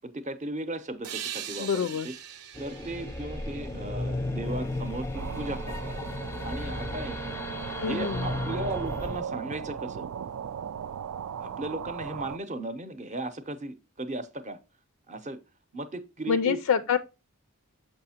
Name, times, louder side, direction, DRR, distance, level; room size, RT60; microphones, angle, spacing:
voice 1, 0.0-2.1 2.6-5.9 6.4-7.2 7.8-10.1 11.4-14.6 15.1-15.4 15.7-16.6, right 1 dB, 30° right, 0.7 m, -36 dB
sound 1, 1.0-4.5, right 10 dB, 90° right, 0.7 m, -41 dB
voice 2, 1.6-2.1 7.8-8.3 16.3-17.0, left 7 dB, 70° left, 0.4 m, -26 dB
sound 2, 2.5-9.2, left 1 dB, 10° left, 0.5 m, -34 dB
sound 3, 5.1-12.4, right 8 dB, 70° right, 0.3 m, -37 dB
6.6 x 5.5 x 2.8 m
head